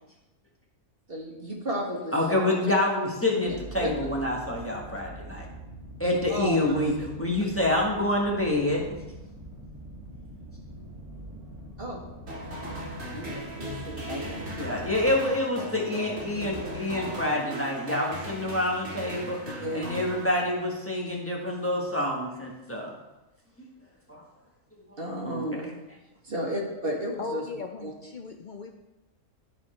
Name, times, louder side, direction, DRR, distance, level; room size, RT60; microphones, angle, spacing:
voice 1, 1.1-2.7 3.8-3.9 6.3-7.2 11.8-12.0 13.1-14.5 19.6-19.9 25.0-25.7 26.2-27.4 27.8-27.9, equal, 40° right, -2 dB, 2.0 m, -33 dB
voice 2, 2.1-5.5 6.0-8.9 14.5-19.4 19.7-22.9 24.1-24.2 25.2-25.4, left 1 dB, 10° left, -2 dB, 1.3 m, -27 dB
sound 1, 3.5-15.1, right 1 dB, 15° right, 1.6 m, -43 dB
sound 2, 12.3-20.8, equal, 60° right, 2.5 m, -38 dB
voice 3, 27.2-28.7, left 4 dB, 80° left, 4 dB, 0.4 m, -37 dB
13.0 x 4.5 x 4.4 m, 1.0 s
omnidirectional pair, 1.5 m